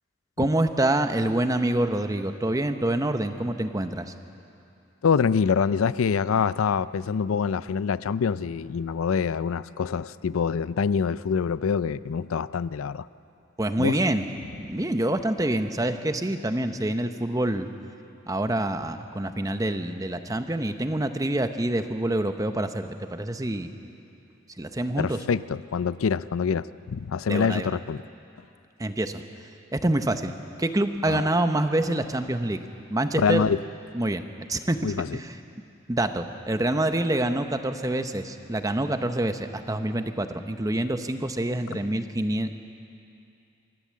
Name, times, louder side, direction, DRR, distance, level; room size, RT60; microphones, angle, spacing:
voice 1, 0.4-4.1 13.6-14.3 14.6-17.7 18.3-23.7 24.6-25.2 27.3-27.8 28.8-30.3 30.6-32.6 32.9-33.4 33.9-34.2 34.5-34.8 35.1-35.4 35.9-42.5, right 1 dB, 15° right, 8 dB, 0.7 m, -26 dB
voice 2, 5.0-13.1 13.8-14.0 25.0-28.0 31.1-31.3 33.2-33.6 34.8-35.2, left 6 dB, 85° left, 17 dB, 0.4 m, -25 dB
26.0 x 13.5 x 7.5 m, 2.6 s
head